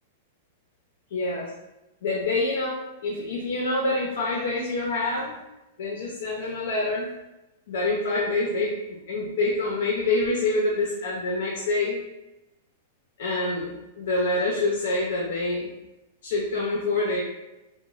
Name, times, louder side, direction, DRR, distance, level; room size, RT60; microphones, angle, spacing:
voice 1, 1.1-1.5 2.0-5.3 5.8-7.1 7.7-12.0 13.2-15.7 16.2-17.2, left 2 dB, 60° left, -3 dB, 0.5 m, -26 dB
2.9 x 2.1 x 2.4 m, 0.96 s
supercardioid pair, 175°, 0 cm